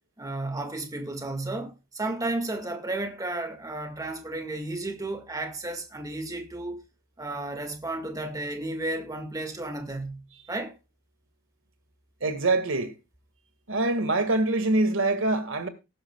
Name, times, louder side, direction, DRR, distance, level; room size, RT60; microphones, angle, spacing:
voice 1, 0.2-6.8 7.2-10.2 10.5-10.7, right 2 dB, 15° right, 1.8 m, -33 dB
voice 2, 12.2-12.9 13.7-15.7, right 2 dB, 65° right, 1.8 m, -24 dB
18.5 x 10.5 x 2.3 m
head